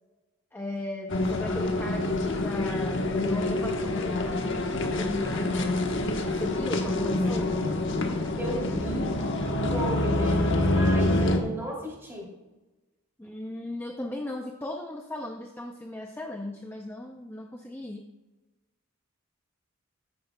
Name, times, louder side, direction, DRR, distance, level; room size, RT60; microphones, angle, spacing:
voice 1, 0.5-5.9 6.1-7.6 13.2-18.0, left 2 dB, 10° left, 2 dB, 0.5 m, -37 dB
sound 1, 1.1-11.4, left 1 dB, 55° left, 1.1 m, -26 dB
voice 2, 8.4-9.1 9.7-12.3, equal, 10° right, -2 dB, 2.7 m, -34 dB
14.0 x 9.5 x 2.2 m, 1.1 s
head